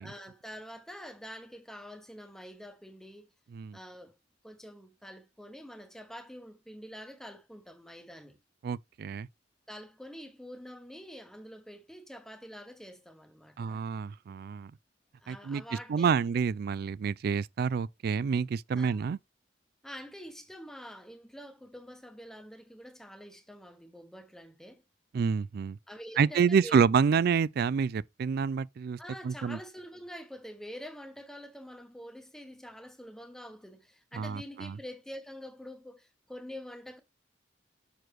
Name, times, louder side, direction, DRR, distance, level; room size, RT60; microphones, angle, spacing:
voice 1, 0.0-3.3 3.7-4.2 4.4-8.4 9.7-13.8 15.2-16.3 18.7-19.0 19.8-24.8 25.9-26.9 29.0-37.0, equal, 5° left, 0.9 m, -46 dB
voice 2, 8.6-9.3 13.6-14.7 15.3-15.6 15.9-19.2 25.1-25.8 26.2-29.0 29.2-29.6 34.1-34.7, right 6 dB, 55° right, 0.3 m, -28 dB
6.8 x 6.1 x 3.1 m
head